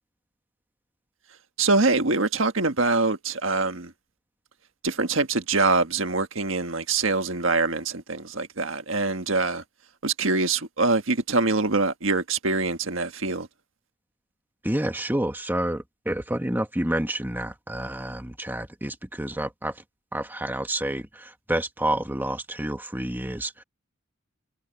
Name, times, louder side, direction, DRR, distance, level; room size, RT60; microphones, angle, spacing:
voice 1, 1.6-3.9 4.8-9.6 10.0-13.5, right 3 dB, 70° right, 1.6 m, -24 dB
voice 2, 14.6-19.8 20.1-23.6, right 1 dB, 10° right, 1.6 m, -29 dB
head